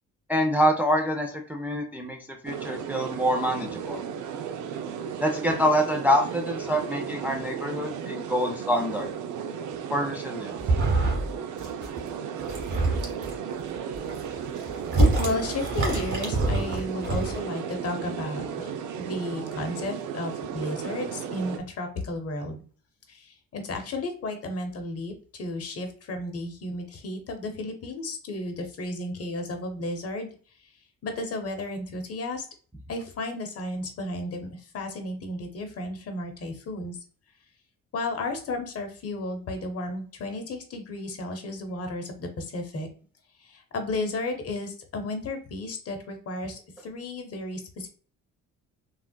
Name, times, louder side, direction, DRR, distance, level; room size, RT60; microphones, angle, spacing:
voice 1, 0.3-4.0 5.2-9.1 9.9-10.5, equal, 5° right, 2 dB, 0.4 m, -26 dB
sound 1, 2.5-21.6, right 7 dB, 75° right, 0.5 m, -35 dB
sound 2, 10.6-11.3 11.6-12.0 12.4-13.3 13.9-17.4, right 2 dB, 45° right, 1.5 m, -25 dB
voice 2, 15.2-22.6 23.1-30.3 31.0-32.4 32.9-37.0 37.9-42.9 43.4-47.9, left 2 dB, 50° left, 6 dB, 0.8 m, -33 dB
3.5 x 2.3 x 2.2 m, 0.43 s
cardioid pair, 90°, 30 cm